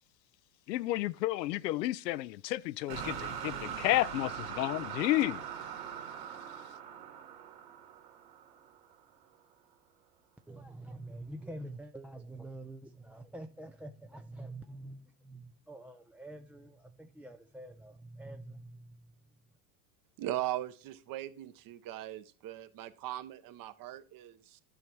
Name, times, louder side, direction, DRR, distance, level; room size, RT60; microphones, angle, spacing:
voice 1, 0.7-5.5, left 16 dB, 90° left, 0.7 m, -31 dB
sound 1, 2.9-8.9, right 8 dB, 75° right, 2.7 m, -41 dB
voice 2, 10.5-19.0, right 1 dB, 5° right, 0.4 m, -46 dB
voice 3, 20.2-24.6, right 14 dB, 45° right, 1.1 m, -39 dB
12.0 x 5.7 x 4.7 m
supercardioid pair, 110°, 48 cm